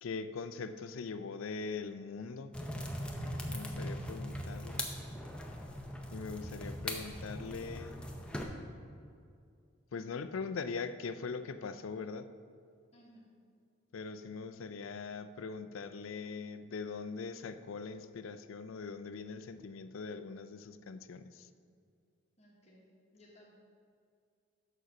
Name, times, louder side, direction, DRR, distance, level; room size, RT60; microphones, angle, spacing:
voice 1, 0.0-2.6 3.5-4.8 6.1-8.0 9.9-12.3 13.9-21.5, left 4 dB, 85° left, 11 dB, 0.4 m, -41 dB
sound 1, 2.5-8.4, left 1 dB, 5° left, 0.5 m, -40 dB
voice 2, 12.9-13.3 22.4-23.5, equal, 30° left, -4 dB, 1.2 m, -60 dB
6.6 x 6.3 x 5.8 m, 2.3 s
head